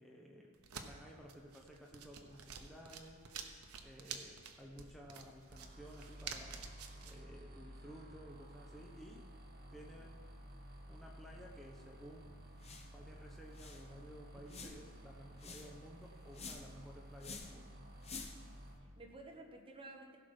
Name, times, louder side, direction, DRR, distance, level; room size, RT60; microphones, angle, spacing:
voice 1, 0.0-3.2 3.8-6.8 7.0-9.2 9.7-10.2 10.9-12.3 12.8-17.7, equal, ahead, -3 dB, 0.9 m, -55 dB
sound 1, 0.5-7.2, right 6 dB, 70° right, 0.9 m, -50 dB
sound 2, 5.5-18.7, equal, 45° right, 1.8 m, -54 dB
sound 3, 12.6-13.0 13.2-13.3 13.5-13.9 14.5-14.9 15.4-15.8 16.3-16.8 17.2-17.6 18.0-18.5, left 4 dB, 30° left, 0.9 m, -49 dB
voice 2, 14.3-14.7 18.8-20.2, right 2 dB, 25° right, 1 dB, 1.3 m, -54 dB
16.0 x 6.1 x 4.9 m, 2.1 s
head